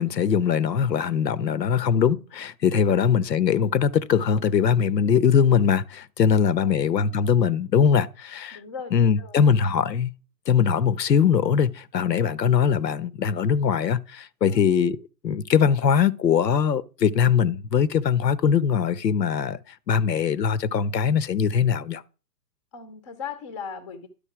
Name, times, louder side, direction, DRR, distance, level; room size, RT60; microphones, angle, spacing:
voice 1, 0.0-8.6 8.9-10.1 10.5-15.0 15.2-19.6 19.9-22.0, left 7 dB, 80° left, 0.9 m, -21 dB
voice 2, 6.3-6.9 8.5-9.5 14.4-14.7 22.7-24.1, left 6 dB, 20° left, 0.6 m, -39 dB
11.5 x 4.0 x 5.8 m
hypercardioid pair, 145°, 49 cm